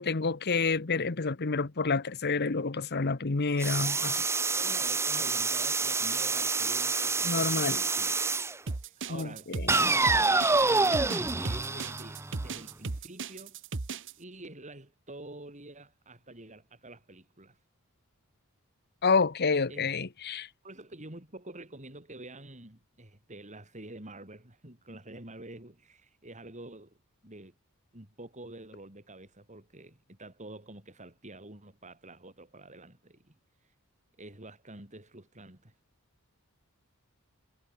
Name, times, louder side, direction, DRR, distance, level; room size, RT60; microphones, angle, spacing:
voice 1, 0.0-4.2 7.2-7.8 9.1-9.9 19.0-20.5, left 4 dB, 50° left, 1.0 m, -29 dB
sound 1, 3.6-8.6 9.7-12.6, right 3 dB, 10° right, 0.7 m, -27 dB
voice 2, 4.5-8.2 8.8-13.6 14.2-17.6 19.7-19.9 20.6-27.0 27.2-27.5 27.9-33.3 34.2-35.7, right 2 dB, 35° right, 6.3 m, -47 dB
sound 2, 8.7-14.1, right 3 dB, 55° right, 1.1 m, -36 dB
head